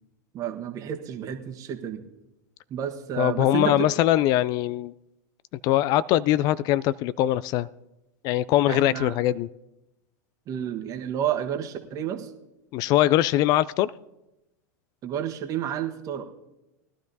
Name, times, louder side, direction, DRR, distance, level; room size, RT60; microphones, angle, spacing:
voice 1, 0.3-2.0 2.7-3.9 8.7-9.1 10.5-12.3 15.0-16.2, right 9 dB, 35° right, 6 dB, 1.3 m, -30 dB
voice 2, 3.2-4.9 5.6-7.7 8.2-9.5 12.7-13.9, left 14 dB, 40° left, 18 dB, 0.3 m, -22 dB
20.0 x 12.5 x 2.7 m, 0.93 s
hypercardioid pair, 95°, 10 cm